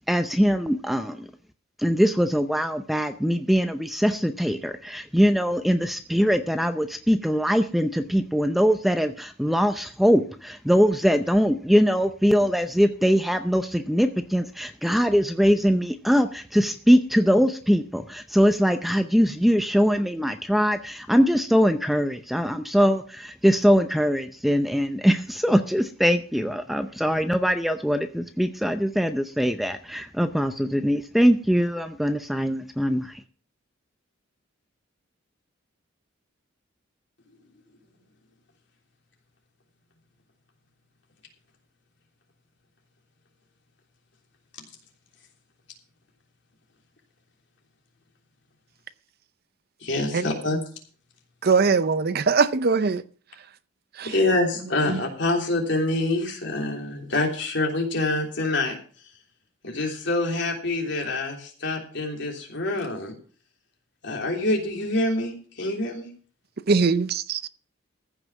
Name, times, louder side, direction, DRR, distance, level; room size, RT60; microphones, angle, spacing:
voice 1, 0.1-1.3 1.8-33.2, equal, ahead, 0.6 m, -22 dB
voice 2, 49.8-50.6 54.0-58.8 59.6-63.1 64.0-66.1, left 2 dB, 60° left, 3.3 m, -26 dB
voice 3, 51.4-53.0 54.0-54.1 66.7-67.5, right 4 dB, 50° right, 0.6 m, -21 dB
14.5 x 5.9 x 7.1 m
head